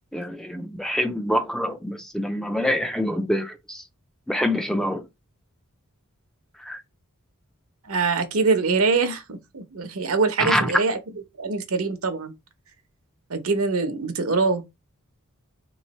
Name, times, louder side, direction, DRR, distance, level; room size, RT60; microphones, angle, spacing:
voice 1, 0.1-3.8 4.3-5.0 6.6-6.8 10.4-10.7, equal, ahead, 0.3 m, -26 dB
voice 2, 7.8-11.0 11.4-12.3 13.3-14.6, right 4 dB, 70° right, 0.8 m, -23 dB
3.5 x 3.1 x 4.1 m
head